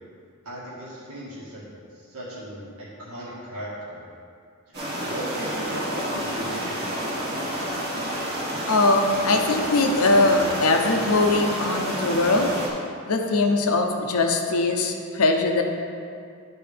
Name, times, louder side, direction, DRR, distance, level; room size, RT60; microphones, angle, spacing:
voice 1, 0.4-4.0 5.0-6.9, equal, 80° right, -8 dB, 1.8 m, -37 dB
sound 1, 4.7-12.7, equal, 50° right, 1.6 m, -29 dB
voice 2, 8.7-12.6 13.1-15.6, left 2 dB, 70° left, 4 dB, 0.7 m, -21 dB
11.0 x 4.6 x 3.4 m, 2.3 s
head